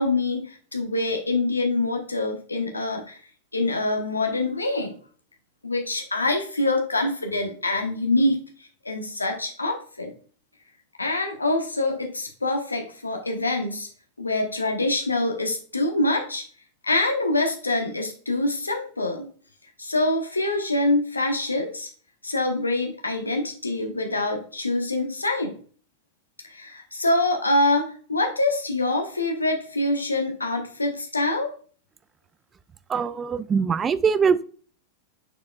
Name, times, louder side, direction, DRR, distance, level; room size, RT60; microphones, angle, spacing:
voice 1, 0.0-3.2 3.5-4.9 5.6-8.4 8.8-10.1 11.0-13.9 14.2-16.4 16.8-19.2 19.8-21.9 22.2-25.6 26.5-31.5, left 2 dB, 80° left, 3 dB, 1.0 m, -25 dB
voice 2, 32.9-34.4, right 6 dB, 20° right, 16 dB, 0.4 m, -22 dB
6.7 x 6.6 x 2.3 m, 0.43 s
figure-of-eight pair, 90°, 0 cm